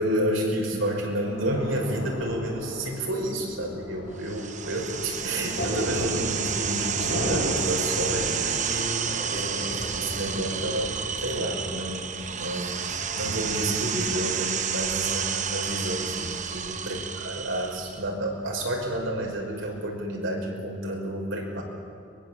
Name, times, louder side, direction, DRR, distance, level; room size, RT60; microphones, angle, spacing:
voice 1, 0.0-21.6, right 1 dB, 75° right, 0 dB, 5.4 m, -30 dB
Thunder, 0.8-19.7, equal, 65° left, 6.7 m, -37 dB
sound 1, 4.2-18.0, right 7 dB, 35° right, 0.9 m, -31 dB
23.0 x 22.0 x 7.6 m, 2.3 s
head